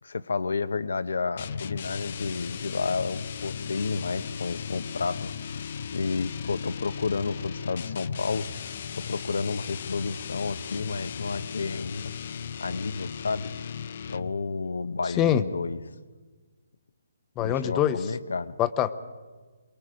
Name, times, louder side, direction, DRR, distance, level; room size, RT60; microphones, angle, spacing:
voice 1, 0.0-5.6 5.9-8.5 9.1-12.1 12.6-13.5 14.0-15.8 17.4-18.5, left 4 dB, 80° left, 13 dB, 0.9 m, -31 dB
sound 1, 1.4-14.5, left 7 dB, 50° left, 0.7 m, -36 dB
voice 2, 17.4-18.0 18.6-19.0, left 11 dB, 20° left, 12 dB, 0.8 m, -24 dB
24.0 x 22.0 x 5.1 m, 1.4 s
hypercardioid pair, 150°, 0 cm